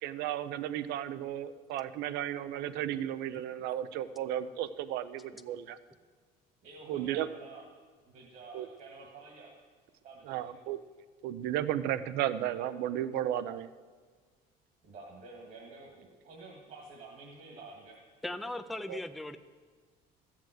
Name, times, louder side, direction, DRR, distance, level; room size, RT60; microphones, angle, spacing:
voice 1, 0.0-5.8 6.9-7.3 8.5-8.7 10.2-10.8 11.2-13.7 18.9-19.0, right 11 dB, 75° right, 14 dB, 0.6 m, -34 dB
voice 2, 6.6-7.7 8.1-9.5 10.0-10.5 14.8-18.0, right 3 dB, 55° right, -1 dB, 1.9 m, -50 dB
voice 3, 18.2-19.4, left 1 dB, ahead, 9 dB, 0.3 m, -38 dB
13.5 x 7.4 x 7.7 m, 1.5 s
cardioid pair, 155°, 17 cm